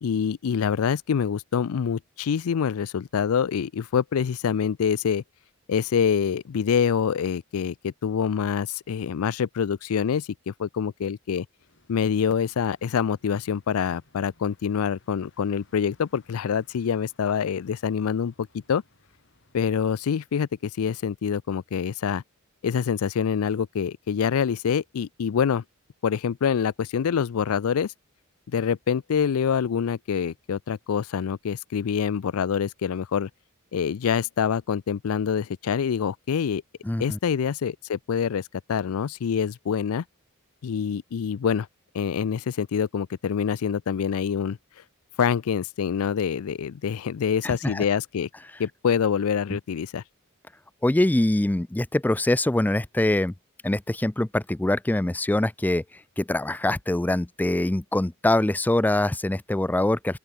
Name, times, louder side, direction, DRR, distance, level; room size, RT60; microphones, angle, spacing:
voice 1, 0.0-5.2 5.7-11.5 11.9-18.8 19.5-22.2 22.6-25.6 26.0-27.9 28.5-33.3 33.7-36.6 37.0-40.0 40.6-41.7 41.9-44.6 45.2-48.3 48.6-50.0, left 7 dB, 80° left, 0.4 m, -26 dB
sound 1, 11.6-19.7, left 3 dB, 60° left, 5.0 m, -62 dB
voice 2, 36.8-37.2 47.4-47.8 50.8-53.3 53.6-55.8 56.2-60.2, left 1 dB, 10° left, 0.3 m, -24 dB
open air
head